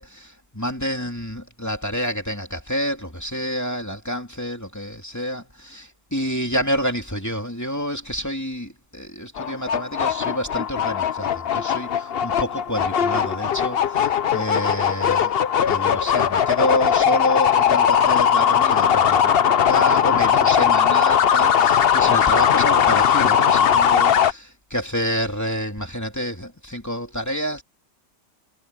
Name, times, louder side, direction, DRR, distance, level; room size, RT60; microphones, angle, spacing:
voice 1, 0.0-15.3 15.7-27.6, equal, 10° left, 2.6 m, -28 dB
sound 1, 9.4-24.3, left 8 dB, 60° left, 0.6 m, -19 dB
omnidirectional pair, 2.0 m